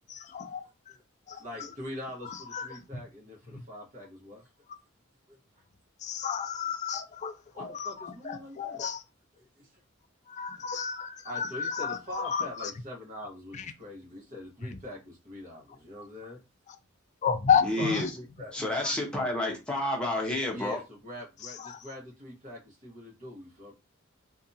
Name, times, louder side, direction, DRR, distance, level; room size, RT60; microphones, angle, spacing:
voice 1, 0.1-0.6 1.3-1.4 2.3-2.8 3.5-3.6 6.0-9.0 10.3-12.7 13.5-13.6 17.2-18.0 18.8-18.9 21.6-21.8, left 7 dB, 35° left, 0.3 m, -31 dB
voice 2, 1.3-4.5 5.3-5.4 7.5-8.8 9.3-9.7 11.2-16.4 17.5-18.5 20.5-23.7, left 1 dB, 40° right, 1.1 m, -43 dB
voice 3, 17.6-18.2 18.5-20.8, left 1 dB, 5° left, 0.8 m, -30 dB
2.6 x 2.3 x 2.6 m
head